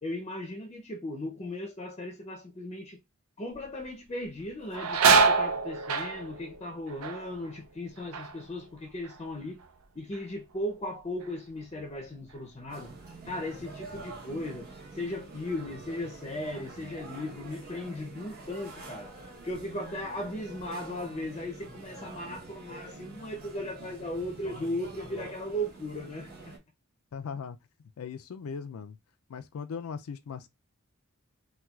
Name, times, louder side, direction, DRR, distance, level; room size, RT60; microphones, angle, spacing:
voice 1, 0.0-3.0 3.4-9.6 10.0-13.0 13.3-19.1 19.4-26.5, left 1 dB, 25° left, 0.5 m, -37 dB
sound 1, 3.5-3.9 4.2-9.8 10.1-10.7 11.2-14.1 14.5-14.6 15.6-15.8 16.2-17.3 17.8-17.9 18.5-19.2 19.5-20.6, right 5 dB, 85° right, 0.5 m, -29 dB
sound 2, 12.7-26.6, right 3 dB, 45° right, 0.9 m, -46 dB
voice 2, 27.1-27.6 28.0-29.0 29.3-30.5, left 6 dB, 85° left, 0.4 m, -38 dB
4.3 x 2.3 x 2.3 m
head